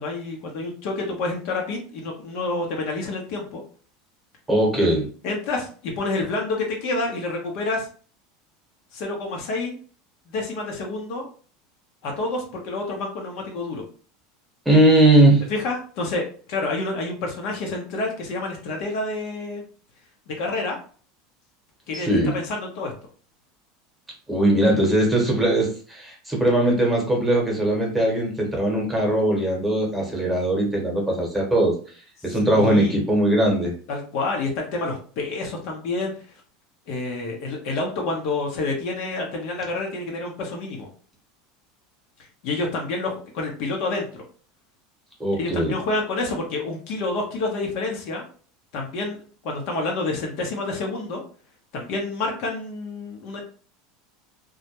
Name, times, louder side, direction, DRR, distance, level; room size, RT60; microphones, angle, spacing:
voice 1, 0.0-3.6 5.2-7.9 8.9-9.8 10.3-11.3 12.0-13.8 15.5-19.6 20.3-20.8 21.9-22.1 22.3-22.9 32.3-33.0 33.9-36.1 36.9-40.9 42.4-44.0 45.3-48.2 48.7-49.2 49.4-51.2 51.7-53.4, left 2 dB, 60° left, 1 dB, 0.7 m, -28 dB
voice 2, 4.5-5.1 14.6-15.4 21.9-22.4 24.3-31.7 32.2-33.7 45.2-45.7, right 1 dB, 5° right, -1 dB, 1.0 m, -20 dB
2.3 x 2.1 x 2.9 m, 0.42 s
supercardioid pair, 120°, 0 cm